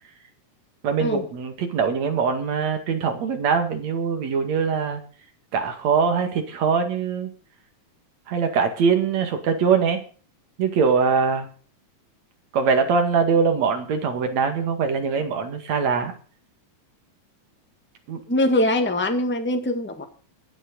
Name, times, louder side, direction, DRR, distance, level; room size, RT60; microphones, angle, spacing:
voice 1, 0.8-5.0 5.5-7.3 8.3-10.0 10.6-11.5 12.5-16.1 18.1-18.2, right 5 dB, 65° right, 3.2 m, -22 dB
voice 2, 18.3-20.0, left 1 dB, 10° left, 0.5 m, -22 dB
22.5 x 7.6 x 5.4 m
omnidirectional pair, 3.4 m